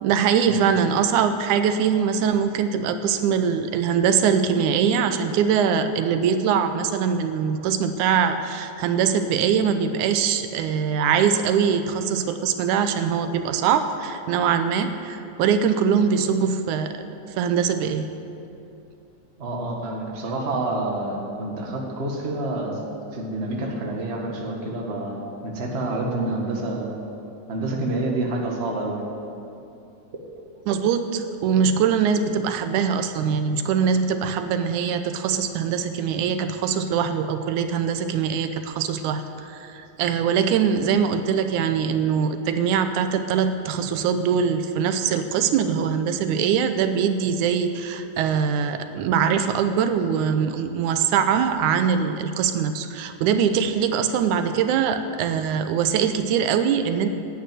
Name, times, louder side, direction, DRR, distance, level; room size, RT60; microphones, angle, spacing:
voice 1, 0.0-17.0 17.4-18.1 30.7-57.1, right 7 dB, 85° right, 9 dB, 2.1 m, -22 dB
voice 2, 19.4-22.8 23.1-25.2 25.4-27.0 27.5-29.1, right 2 dB, 30° right, -1 dB, 1.4 m, -28 dB
11.0 x 9.0 x 9.2 m, 2.7 s
omnidirectional pair, 3.5 m